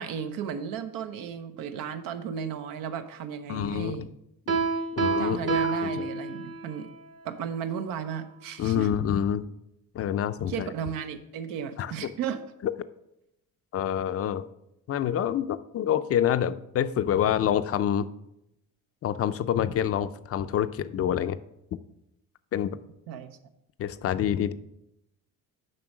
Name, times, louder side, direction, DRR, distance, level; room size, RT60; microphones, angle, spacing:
voice 1, 0.0-4.1 5.2-6.9 7.2-8.9 10.5-12.4 23.1-23.4, right 8 dB, 85° right, 9 dB, 0.9 m, -34 dB
voice 2, 3.5-4.1 5.0-6.1 8.6-9.4 9.9-10.7 11.8-11.9 12.6-12.7 13.7-14.5 14.9-18.1 19.0-21.4 22.5-22.8 23.8-24.5, left 10 dB, 45° left, 13 dB, 0.5 m, -27 dB
Piano, 4.5-6.8, right 4 dB, 45° right, 1.2 m, -28 dB
7.6 x 5.4 x 6.0 m, 0.84 s
cardioid pair, 110°, 34 cm